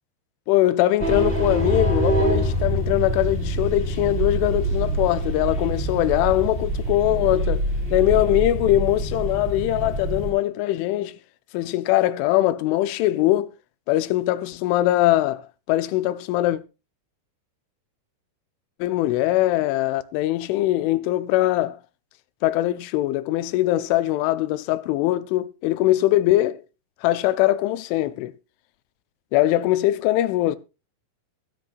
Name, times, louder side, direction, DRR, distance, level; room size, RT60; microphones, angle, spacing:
voice 1, 0.5-7.6 7.9-11.1 11.5-13.5 13.9-16.6 18.8-21.8 22.4-26.6 27.0-28.3 29.3-30.6, left 15 dB, 85° left, 3.1 m, -21 dB
sound 1, 1.0-10.3, right 1 dB, 15° right, 3.5 m, -25 dB
21.5 x 7.7 x 2.4 m
omnidirectional pair, 5.4 m